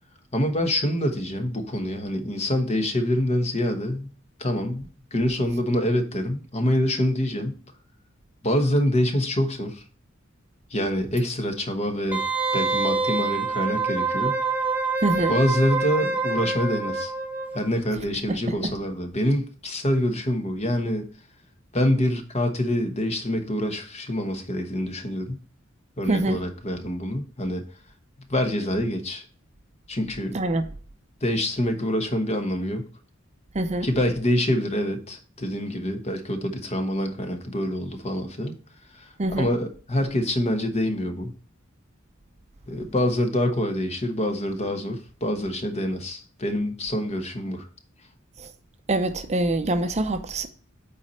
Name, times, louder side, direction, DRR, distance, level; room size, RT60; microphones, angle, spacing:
voice 1, 0.3-4.1 4.4-7.6 8.4-9.8 10.7-12.2 12.5-14.4 15.3-17.1 17.5-21.1 21.7-25.4 26.0-27.6 28.3-29.2 29.9-30.4 31.2-32.9 33.8-38.6 38.9-39.0 39.4-41.3 42.7-47.7, left 1 dB, 30° left, 1.2 m, -26 dB
Wind instrument woodwind instrument, 12.1-17.7 18.0-18.1, right 4 dB, 10° right, 0.8 m, -26 dB
voice 2, 15.0-15.3 18.3-18.7 26.1-26.4 30.3-30.7 33.5-33.9 39.2-39.5 48.4-48.5 48.9-50.5, right 2 dB, 35° right, 0.6 m, -25 dB
8.2 x 4.2 x 4.3 m
head